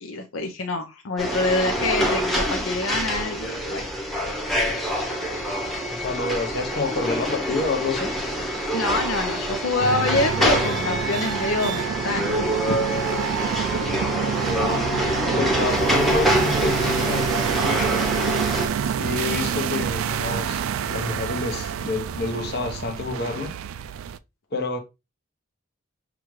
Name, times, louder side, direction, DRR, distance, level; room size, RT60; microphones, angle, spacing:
voice 1, 0.0-4.3 8.7-13.0, left 2 dB, 80° left, 0.6 m, -26 dB
sound 1, 1.2-18.7, equal, ahead, 0.8 m, -26 dB
sound 2, 4.2-14.1, left 6 dB, 35° left, 0.5 m, -41 dB
voice 2, 5.9-8.1 14.2-15.0 15.4-18.0 18.8-23.5 24.5-24.8, left 3 dB, 50° left, 0.9 m, -29 dB
sound 3, 9.8-24.2, right 7 dB, 85° right, 0.3 m, -27 dB
5.9 x 2.4 x 3.1 m
head